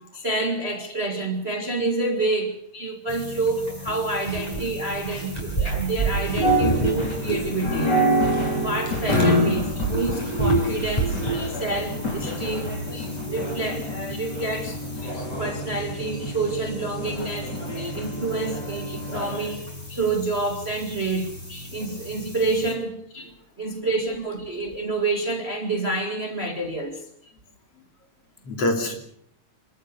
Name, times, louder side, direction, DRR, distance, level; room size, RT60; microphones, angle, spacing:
voice 1, 0.0-8.0 8.6-14.8 15.4-17.5 17.9-19.6 19.9-21.4 21.7-23.3 23.6-27.0, right 3 dB, 20° right, 2.0 m, -28 dB
sound 1, 3.1-22.7, right 2 dB, 10° left, 6.4 m, -31 dB
sound 2, 6.2-19.5, equal, 30° left, 4.5 m, -27 dB
voice 2, 11.3-11.7 12.2-12.4 12.9-13.1 15.0-15.2 16.5-16.6 17.8-17.9 18.9-19.3 19.9-20.1 21.5-21.7 23.2-23.3 23.8-24.2 28.5-29.0, left 2 dB, 50° left, 3.9 m, -33 dB
27.0 x 14.0 x 7.0 m
omnidirectional pair, 3.6 m